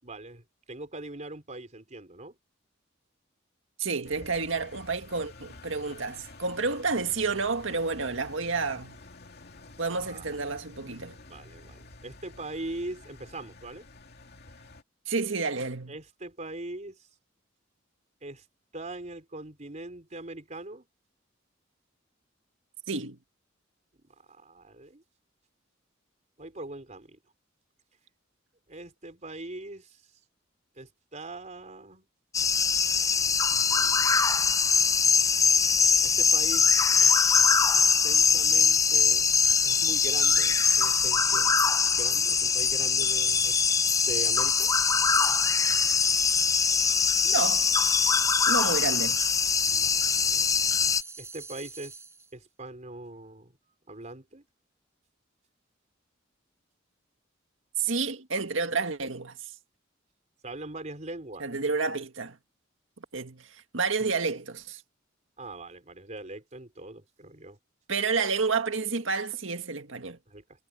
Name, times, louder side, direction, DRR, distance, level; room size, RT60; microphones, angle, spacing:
voice 1, 0.0-2.3 9.9-10.3 11.3-13.8 15.9-17.1 18.2-18.4 18.7-20.9 24.3-25.0 26.4-27.2 28.7-30.1 30.7-32.1 33.2-34.2 36.0-36.7 37.0-37.2 37.8-39.3 39.6-44.7 49.6-50.5 51.2-52.0 52.3-53.6 53.9-54.5 60.4-61.5 64.0-64.1 65.4-67.6 70.3-70.4, right 2 dB, 40° right, 4.4 m, -42 dB
voice 2, 3.8-9.0 9.8-11.2 15.1-15.9 22.9-23.2 47.2-47.7 48.5-49.2 57.8-59.5 61.4-62.4 63.1-64.8 67.9-70.2, right 4 dB, 80° right, 1.9 m, -30 dB
Engine, 4.0-14.8, left 2 dB, 55° left, 2.7 m, -50 dB
sound 1, 32.3-51.0, left 5 dB, 15° left, 0.5 m, -23 dB
sound 2, 43.1-52.3, right 4 dB, 15° right, 5.2 m, -42 dB
head